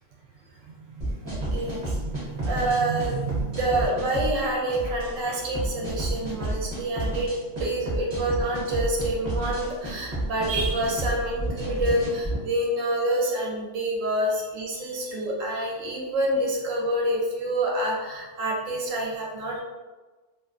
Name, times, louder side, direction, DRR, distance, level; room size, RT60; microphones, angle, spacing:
sound 1, 1.0-12.4, right 1 dB, 35° right, 0.7 m, -30 dB
voice 1, 1.2-7.3 7.6-19.6, right 1 dB, 70° right, -2 dB, 0.9 m, -27 dB
2.5 x 2.4 x 2.4 m, 1.3 s
omnidirectional pair, 1.5 m